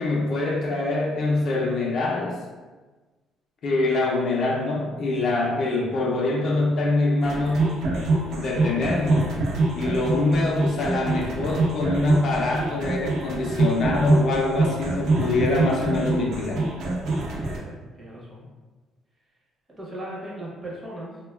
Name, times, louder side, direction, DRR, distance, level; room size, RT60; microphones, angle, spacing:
voice 1, 0.0-2.3 3.6-7.7 8.3-9.3 9.7-16.6, left 2 dB, 45° left, -1 dB, 0.4 m, -24 dB
sound 1, 7.2-17.6, right 2 dB, 65° right, 0.5 m, -25 dB
voice 2, 17.4-18.5 19.8-21.2, right 1 dB, 15° right, -4 dB, 0.6 m, -38 dB
3.2 x 2.1 x 2.2 m, 1.3 s
cardioid pair, 160°, 0 cm